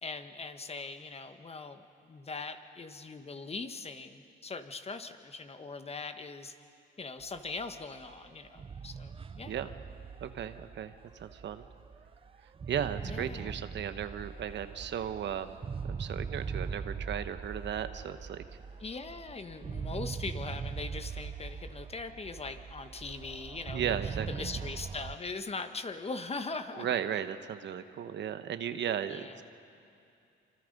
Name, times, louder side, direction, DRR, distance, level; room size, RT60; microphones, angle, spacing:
voice 1, 0.0-6.5 7.0-9.5 13.0-13.5 18.8-26.9 29.1-29.4, left 4 dB, 30° left, 8 dB, 1.4 m, -41 dB
sound 1, 7.2-25.2, right 5 dB, 25° right, 0.5 m, -41 dB
voice 2, 10.2-11.6 12.7-15.6 15.9-18.4 23.7-24.3 26.8-29.4, right 9 dB, 65° right, 10 dB, 1.1 m, -35 dB
26.5 x 26.5 x 5.3 m, 2.6 s
cardioid pair, 90°, 20 cm